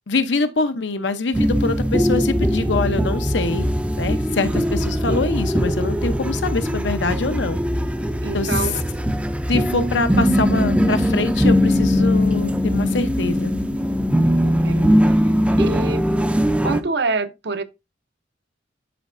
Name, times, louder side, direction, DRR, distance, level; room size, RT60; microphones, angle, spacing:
voice 1, 0.1-3.7 4.0-7.6 8.3-8.5 9.5-13.5, left 3 dB, 75° left, 0.8 m, -24 dB
sound 1, 1.3-16.8, equal, 5° right, 0.5 m, -20 dB
voice 2, 8.2-8.8 14.4-15.1 15.6-16.0 16.6-17.6, right 3 dB, 65° right, 0.7 m, -26 dB
11.0 x 4.1 x 2.5 m
head